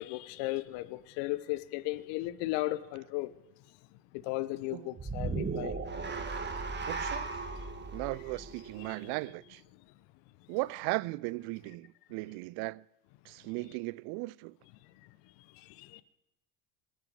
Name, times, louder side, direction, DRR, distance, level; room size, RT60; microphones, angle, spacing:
voice 1, 0.0-3.3 4.1-5.8 7.8-7.9 8.8-9.1 15.0-15.1 15.5-16.0, left 18 dB, 60° left, 0.9 m, -36 dB
sound 1, 5.0-9.3, right 4 dB, 20° right, 1.6 m, -37 dB
voice 2, 6.8-7.5 7.9-9.6 10.5-12.8 13.3-14.5, right 22 dB, 55° right, 0.5 m, -37 dB
24.0 x 8.0 x 4.8 m
hypercardioid pair, 70°, 47 cm